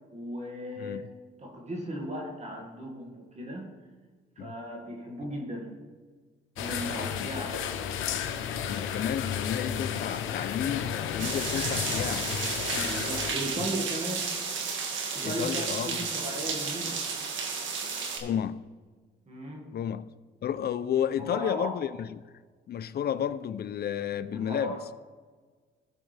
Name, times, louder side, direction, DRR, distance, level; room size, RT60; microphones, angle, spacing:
voice 1, 0.1-1.1 1.4-3.7 4.4-5.8 6.6-7.8 12.7-14.3 15.1-17.0 19.3-19.6 21.2-21.7 24.3-24.8, equal, 35° right, 2.0 m, -36 dB
voice 2, 0.8-1.1 4.4-4.5 6.8-7.4 8.7-12.3 15.2-16.0 18.2-18.6 19.7-20.1 20.4-22.2 22.7-24.8, left 9 dB, 55° left, 0.6 m, -32 dB
sound 1, 6.6-13.3, left 8 dB, 85° left, 0.8 m, -32 dB
sound 2, 11.2-18.2, right 5 dB, 70° right, 1.7 m, -32 dB
17.0 x 6.4 x 3.4 m
cardioid pair, 90°, 20 cm